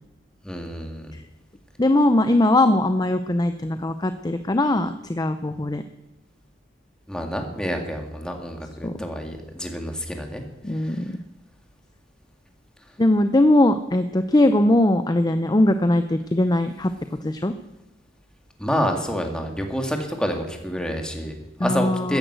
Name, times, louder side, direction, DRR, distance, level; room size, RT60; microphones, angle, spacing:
voice 1, 0.4-1.1 7.1-10.4 10.7-11.0 18.6-22.2, equal, 5° left, 3 dB, 2.1 m, -28 dB
voice 2, 1.8-5.8 8.8-9.0 10.6-11.2 13.0-16.9 17.2-17.5 21.6-22.2, left 1 dB, 20° left, 9 dB, 0.6 m, -20 dB
14.0 x 10.5 x 8.1 m, 0.96 s
head